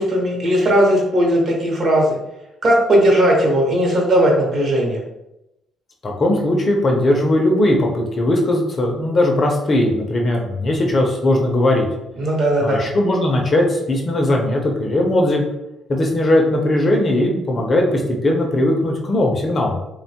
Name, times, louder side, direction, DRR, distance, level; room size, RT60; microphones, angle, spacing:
voice 1, 0.0-2.2 2.6-5.0 12.2-12.9, equal, 45° right, -2 dB, 0.7 m, -17 dB
voice 2, 6.0-11.9 12.6-15.4 15.9-19.8, left 1 dB, 30° left, 1 dB, 0.4 m, -18 dB
2.9 x 2.1 x 2.7 m, 0.89 s
cardioid pair, 160°, 0 cm